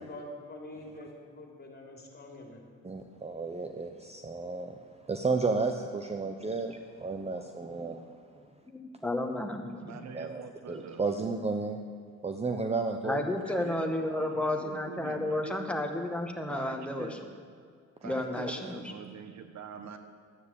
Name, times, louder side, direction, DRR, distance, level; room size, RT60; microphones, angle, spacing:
voice 1, 0.0-2.6, left 1 dB, 30° left, 0 dB, 3.4 m, -45 dB
voice 2, 2.8-4.8 5.1-8.0 10.1-11.8 12.2-13.2, right 4 dB, 20° right, 5 dB, 0.9 m, -32 dB
voice 3, 8.7-10.0 13.0-17.2 18.0-18.9, left 1 dB, 5° left, 3 dB, 1.8 m, -32 dB
voice 4, 9.8-11.0 13.5-15.6 16.5-17.2 18.0-20.0, right 6 dB, 65° right, 8 dB, 1.3 m, -44 dB
12.5 x 9.3 x 8.4 m, 2.1 s
cardioid pair, 90°, 30 cm